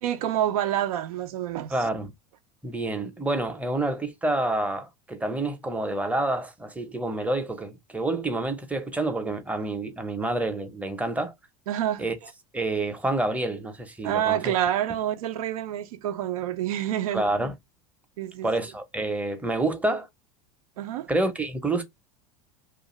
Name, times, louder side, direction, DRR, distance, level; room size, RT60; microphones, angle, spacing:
voice 1, 0.0-1.9 11.7-12.0 14.0-17.3 18.2-18.5 20.8-21.1, right 11 dB, 80° right, 0.5 m, -27 dB
voice 2, 1.7-2.1 2.6-11.3 12.0-12.2 12.5-14.5 17.1-17.5 18.4-20.1 21.1-21.8, right 2 dB, 10° right, 0.6 m, -28 dB
2.4 x 2.4 x 2.9 m
hypercardioid pair, 95°, 18 cm